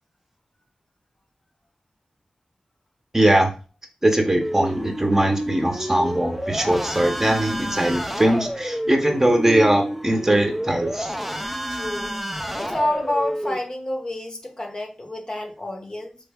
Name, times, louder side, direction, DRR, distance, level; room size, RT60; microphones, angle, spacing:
voice 1, 3.1-3.5 4.0-11.1, right 1 dB, 20° right, 0.8 m, -20 dB
sound 1, 4.4-13.6, equal, 5° right, 0.4 m, -29 dB
voice 2, 11.7-12.2 12.5-16.2, left 1 dB, 35° left, 0.8 m, -28 dB
3.3 x 2.1 x 3.4 m
cardioid pair, 45°, 2 cm